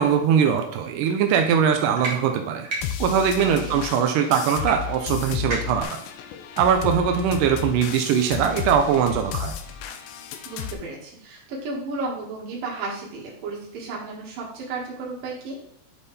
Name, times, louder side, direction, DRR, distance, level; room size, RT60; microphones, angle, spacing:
voice 1, 0.0-2.7 3.0-6.0 6.6-9.5, right 7 dB, 90° right, 4 dB, 1.9 m, -21 dB
sound 1, 1.3-1.5 2.0-2.1 2.6-2.8 3.3-3.5 4.6-4.7 5.0-5.1 5.5-5.8, right 2 dB, 40° right, 1.5 m, -30 dB
sound 2, 2.8-10.7, left 9 dB, 80° left, 2.3 m, -33 dB
voice 2, 3.4-3.8 10.5-15.6, right 3 dB, 65° right, -4 dB, 3.5 m, -33 dB
11.0 x 4.2 x 3.5 m, 0.66 s
omnidirectional pair, 4.6 m